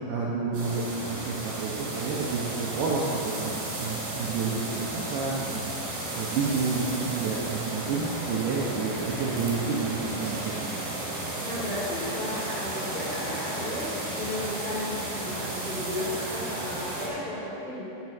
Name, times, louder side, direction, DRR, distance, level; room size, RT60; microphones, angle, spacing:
voice 1, 0.1-5.6 6.1-10.8, right 4 dB, 75° right, -5 dB, 2.5 m, -30 dB
sound 1, 0.5-17.1, right 2 dB, 55° right, 4.8 m, -34 dB
voice 2, 11.4-17.8, left 1 dB, 20° left, -10 dB, 1.5 m, -34 dB
9.2 x 8.1 x 7.2 m, 2.9 s
omnidirectional pair, 5.9 m